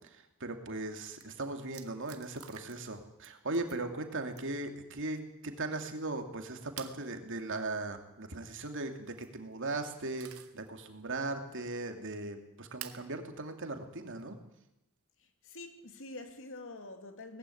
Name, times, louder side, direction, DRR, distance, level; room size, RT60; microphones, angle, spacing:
voice 1, 0.1-14.4, right 2 dB, 60° right, 2.7 m, -38 dB
sound 1, 0.8-0.9 1.1-1.3 1.7-2.9 3.2-3.8 4.3-4.7 6.8-7.0 8.9-9.3 9.8-10.7 11.1-11.2 12.8-13.1 14.2-14.3 16.3-16.8, right 10 dB, 90° right, 1.7 m, -49 dB
voice 2, 15.2-17.4, left 2 dB, 65° left, 2.4 m, -46 dB
19.5 x 15.5 x 9.9 m
head